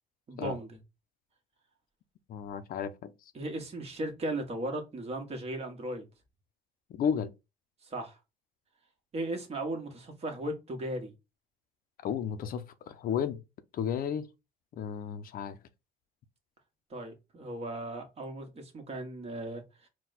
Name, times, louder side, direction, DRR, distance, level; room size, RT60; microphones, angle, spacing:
voice 1, 0.3-0.8 3.3-6.0 7.8-8.2 9.1-11.1 16.9-19.9, right 1 dB, 35° right, 1.4 m, -37 dB
voice 2, 2.3-3.1 7.0-7.3 12.0-13.4 13.7-14.3 14.8-15.6, left 8 dB, 60° left, 0.5 m, -33 dB
4.1 x 2.2 x 4.0 m
cardioid pair, 110°, 17 cm